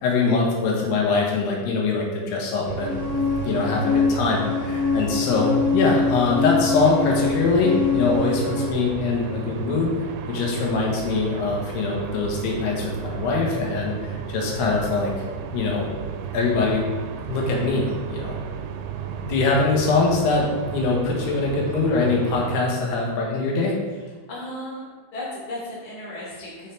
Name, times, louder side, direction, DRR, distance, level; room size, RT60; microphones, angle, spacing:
voice 1, 0.0-3.0 3.4-9.9 10.3-15.1 15.5-15.9 16.3-16.8 17.3-18.4 19.2-23.7, left 4 dB, 85° left, -1 dB, 3.4 m, -23 dB
sound 1, 2.7-22.6, right 7 dB, 85° right, 2.5 m, -33 dB
sound 2, 2.8-8.7, left 4 dB, 70° left, 2.5 m, -24 dB
voice 2, 24.3-24.8 25.1-26.7, left 1 dB, 20° left, -7 dB, 1.4 m, -34 dB
7.3 x 6.5 x 3.4 m, 1.4 s
omnidirectional pair, 4.6 m